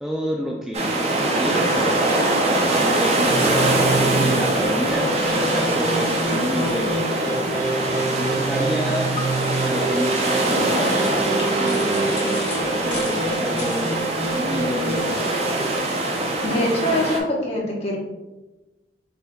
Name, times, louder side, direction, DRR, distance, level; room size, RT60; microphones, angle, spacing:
voice 1, 0.0-1.8 2.7-6.9 7.2-7.4 8.1-9.2 9.6-10.9 11.6-12.5 12.8-13.9 14.3-15.3, equal, ahead, -2 dB, 0.3 m, -29 dB
sound 1, 0.7-17.2, right 1 dB, 35° right, 0.6 m, -23 dB
sound 2, 3.3-15.8, right 2 dB, 85° right, 1.1 m, -27 dB
sound 3, 10.9-14.4, left 4 dB, 90° left, 1.0 m, -37 dB
voice 2, 16.4-18.0, left 1 dB, 35° left, -3 dB, 1.0 m, -23 dB
4.2 x 4.0 x 2.2 m, 1.1 s
head